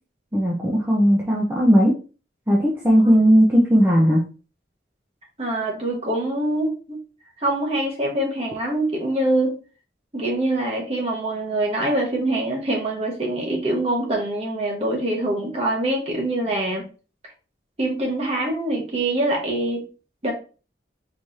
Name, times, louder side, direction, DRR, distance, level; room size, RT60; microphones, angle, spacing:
voice 1, 0.3-2.0 2.5-4.2, equal, 10° right, -4 dB, 0.8 m, -17 dB
voice 2, 5.4-7.0 7.4-9.6 10.1-16.8 17.8-19.8 20.2-20.3, right 1 dB, 35° right, -1 dB, 1.4 m, -24 dB
4.7 x 3.5 x 2.8 m, 0.35 s
head